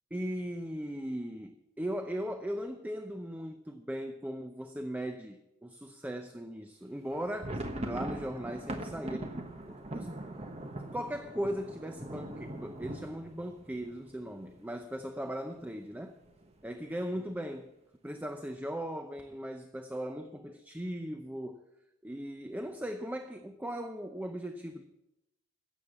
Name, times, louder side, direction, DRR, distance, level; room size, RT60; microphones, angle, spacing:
voice 1, 0.1-10.3 10.9-16.1 16.6-17.7 18.0-21.6 22.0-24.8, equal, 10° right, 0.6 m, -38 dB
sound 1, 7.1-14.8 15.1-15.2 15.5-15.7 16.3-16.7, right 1 dB, 30° right, 1.3 m, -41 dB
16.0 x 7.3 x 7.2 m
head